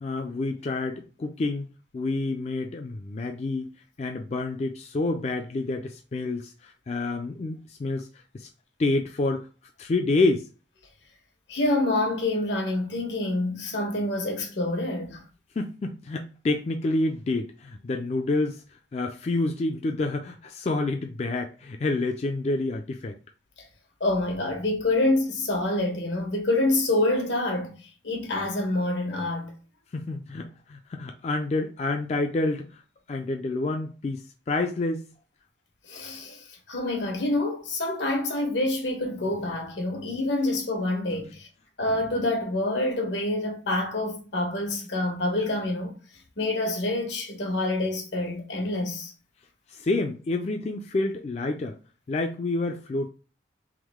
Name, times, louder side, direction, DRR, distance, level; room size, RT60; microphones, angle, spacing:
voice 1, 0.0-1.7 1.9-3.7 4.0-8.1 8.3-8.5 8.8-9.5 9.8-10.5 15.6-18.6 18.9-23.2 29.9-32.7 33.1-35.1 49.7-51.8 52.1-53.1, left 2 dB, 35° left, 0.3 m, -28 dB
voice 2, 11.5-15.2 24.0-27.7 28.0-29.5 35.9-41.5 41.8-45.9 46.4-49.1, left 2 dB, 85° left, 1.3 m, -27 dB
3.6 x 3.0 x 3.4 m
head